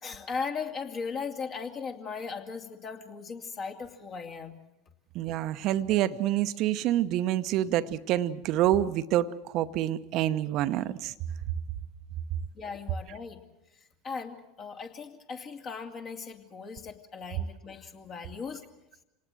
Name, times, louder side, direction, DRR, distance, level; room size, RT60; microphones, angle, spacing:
voice 1, 0.0-4.6 12.5-13.4 14.0-18.6, left 5 dB, 40° left, 3 dB, 2.6 m, -38 dB
voice 2, 5.1-9.3 9.5-11.1, right 13 dB, 50° right, 11 dB, 0.9 m, -27 dB
26.0 x 19.0 x 7.7 m, 0.88 s
hypercardioid pair, 80°, 0 cm